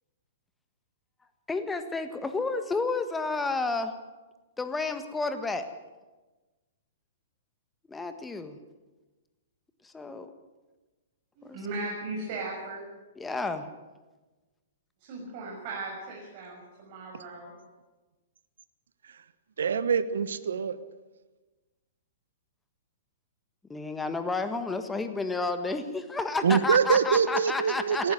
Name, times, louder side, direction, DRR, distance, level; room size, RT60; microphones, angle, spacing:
voice 1, 1.5-3.9 4.6-5.6 7.9-8.6 9.8-10.3 11.5-11.6 13.2-13.7 23.7-28.1, left 3 dB, 10° left, 8 dB, 1.6 m, -31 dB
voice 2, 11.4-12.9 15.0-17.5, right 3 dB, 45° right, -3 dB, 6.8 m, -37 dB
voice 3, 19.6-20.8 26.4-28.1, right 6 dB, 70° right, 14 dB, 1.1 m, -24 dB
18.5 x 15.0 x 9.5 m, 1.2 s
figure-of-eight pair, 115°, 0 cm